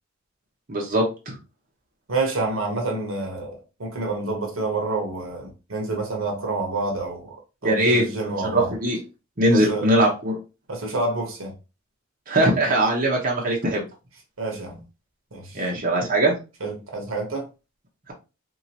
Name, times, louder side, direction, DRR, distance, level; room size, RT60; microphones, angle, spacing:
voice 1, 0.7-1.4 7.6-9.0 9.4-10.3 12.3-13.8 15.5-16.4, right 1 dB, 40° right, 0.9 m, -21 dB
voice 2, 2.1-7.3 7.6-8.7 9.5-9.9 10.7-11.5 14.4-14.8 15.3-15.7 16.6-17.5, right 3 dB, 75° right, 1.0 m, -28 dB
3.0 x 2.9 x 2.7 m
head